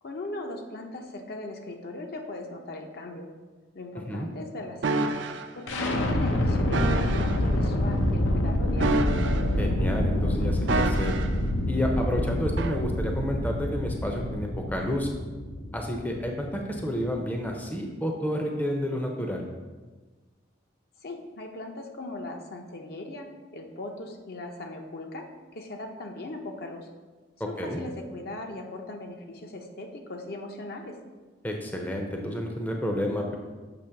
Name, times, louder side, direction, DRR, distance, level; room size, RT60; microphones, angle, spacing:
voice 1, 0.0-3.3 3.7-5.2 5.5-9.1 21.0-25.3 25.5-26.9 27.5-31.0, left 2 dB, 55° left, 3 dB, 0.7 m, -38 dB
sound 1, 4.8-5.5 6.7-7.4 8.8-9.7 10.7-11.4 12.6-12.8, right 3 dB, 70° right, 0.4 m, -28 dB
sound 2, 5.7-17.5, left 1 dB, 90° left, 0.7 m, -27 dB
voice 2, 9.6-11.1 11.7-15.1 15.7-19.4 27.6-27.8 31.4-33.3, equal, 10° left, 1 dB, 0.5 m, -30 dB
6.9 x 3.0 x 5.7 m, 1.3 s
head